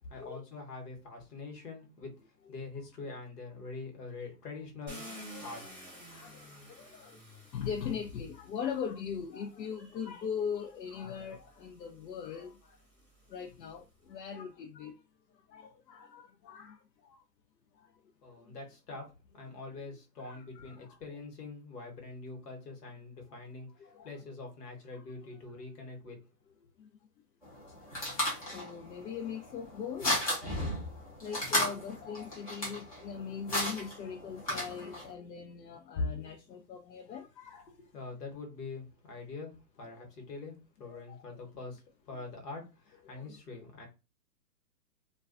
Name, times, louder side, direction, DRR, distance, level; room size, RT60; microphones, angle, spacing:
voice 1, 0.1-2.1 2.5-5.8 18.2-26.2 26.5-26.7 37.8-39.5 39.8-43.9, left 3 dB, 70° left, 1.1 m, -45 dB
Car, 4.9-9.0 9.9-10.0 10.5-13.8, equal, 10° right, 0.7 m, -51 dB
voice 2, 6.1-7.2 7.5-12.8 13.3-14.9 15.5-16.8 17.0-17.2 20.2-21.0 23.8-24.1 24.9-25.0 28.5-30.2 31.2-37.7 40.0-40.1 40.8-41.2 43.1-43.3, left 6 dB, 85° left, 0.6 m, -40 dB
sound 1, 27.4-35.1, left 1 dB, 25° left, 0.5 m, -35 dB
2.3 x 2.2 x 2.4 m
hypercardioid pair, 155°, 49 cm